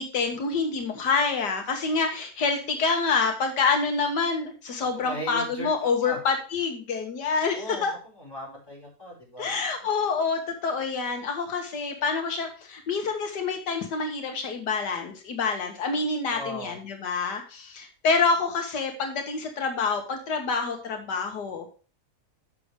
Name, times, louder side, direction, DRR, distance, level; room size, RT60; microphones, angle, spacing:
voice 1, 0.0-7.9 9.4-21.7, left 4 dB, 85° left, 3 dB, 1.9 m, -27 dB
voice 2, 4.9-5.7 6.0-6.2 7.4-7.9 8.2-9.5 16.3-16.8, equal, 15° left, -5 dB, 5.0 m, -38 dB
6.8 x 6.6 x 4.9 m, 0.35 s
omnidirectional pair, 1.7 m